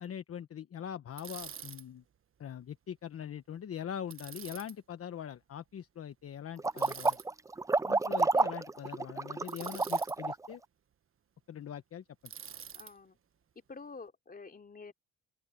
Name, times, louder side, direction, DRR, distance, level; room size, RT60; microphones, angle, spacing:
voice 1, 0.0-2.0 2.4-7.2 7.9-10.6 11.5-12.0, left 9 dB, 50° left, 1.1 m, -42 dB
Bicycle, 1.2-1.8 4.1-4.7 6.8-7.3 9.5-10.2 12.3-12.9, right 8 dB, 45° right, 1.2 m, -46 dB
sound 1, 6.6-10.5, right 3 dB, 10° right, 0.4 m, -29 dB
voice 2, 12.7-13.2 13.7-14.9, left 4 dB, 30° left, 3.1 m, -48 dB
open air
cardioid pair, 90°, 30 cm